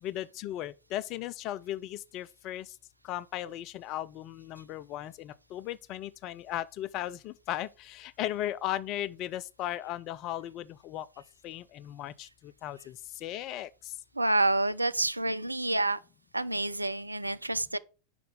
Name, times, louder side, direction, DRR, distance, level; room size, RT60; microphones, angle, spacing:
voice 1, 0.0-2.7 3.0-11.1 11.4-13.9, left 13 dB, 40° left, 0.4 m, -37 dB
voice 2, 14.2-16.0 16.3-17.8, right 2 dB, 85° right, 0.3 m, -28 dB
5.9 x 5.2 x 3.8 m
figure-of-eight pair, 90°, 0 cm